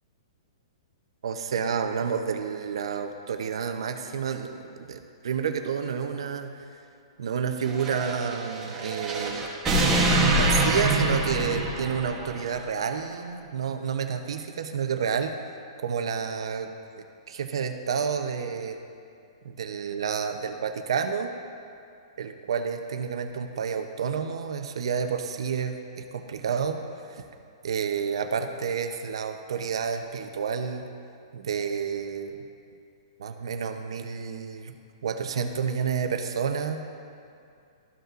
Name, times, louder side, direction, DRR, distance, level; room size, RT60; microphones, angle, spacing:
voice 1, 1.2-6.6 7.2-9.5 10.3-15.3 15.8-16.7 17.3-18.8 19.4-21.3 22.2-27.2 27.6-30.9 31.3-32.4 33.2-34.7 35.0-36.8, right 6 dB, 70° right, 7 dB, 0.7 m, -30 dB
sound 1, 7.7-12.4, right 2 dB, 10° right, 0.9 m, -25 dB
13.5 x 5.4 x 2.5 m, 2.4 s
hypercardioid pair, 175°, 3 cm